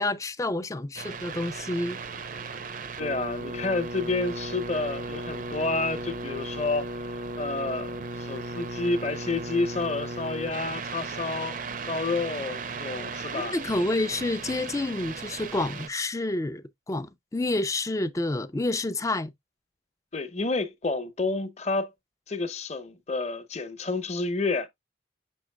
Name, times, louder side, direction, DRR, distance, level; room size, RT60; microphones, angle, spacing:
voice 1, 0.0-2.0 13.3-19.3, left 2 dB, 15° left, 0.4 m, -29 dB
sound 1, 1.0-15.9, right 3 dB, 45° right, 0.5 m, -36 dB
voice 2, 3.0-7.1 7.4-11.6 11.9-13.6 20.1-21.9 22.3-24.7, left 3 dB, 35° left, 0.8 m, -29 dB
7.0 x 6.2 x 2.2 m
head